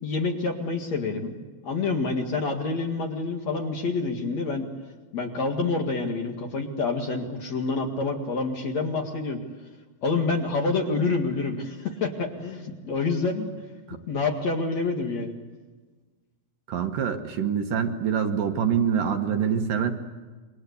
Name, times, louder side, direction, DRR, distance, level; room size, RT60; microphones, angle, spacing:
voice 1, 0.0-4.7 5.1-9.4 10.0-13.6 14.1-15.3, left 3 dB, 50° left, 3 dB, 2.8 m, -27 dB
voice 2, 16.7-19.9, right 7 dB, 65° right, 5 dB, 2.7 m, -25 dB
28.0 x 23.5 x 8.3 m, 1.3 s
omnidirectional pair, 4.5 m